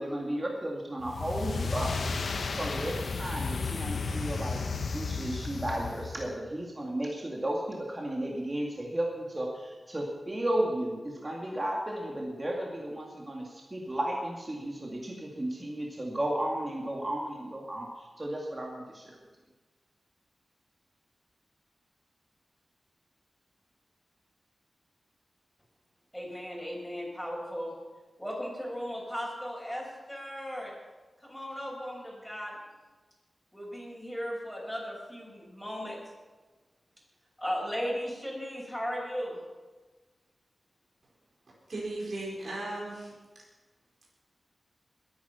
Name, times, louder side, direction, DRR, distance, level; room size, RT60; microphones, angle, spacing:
voice 1, 0.0-1.9 2.4-4.6 4.9-19.2, right 1 dB, 30° right, -1 dB, 2.3 m, -34 dB
sound 1, 1.0-6.3, left 4 dB, 80° left, 1.1 m, -33 dB
voice 2, 26.1-27.7 28.2-30.7 31.2-32.6 33.5-36.0 37.4-39.4, equal, ahead, -4 dB, 6.6 m, -36 dB
voice 3, 41.7-43.1, right 2 dB, 65° right, -4 dB, 4.5 m, -36 dB
21.0 x 9.5 x 5.8 m, 1.3 s
wide cardioid pair, 80°, 0 cm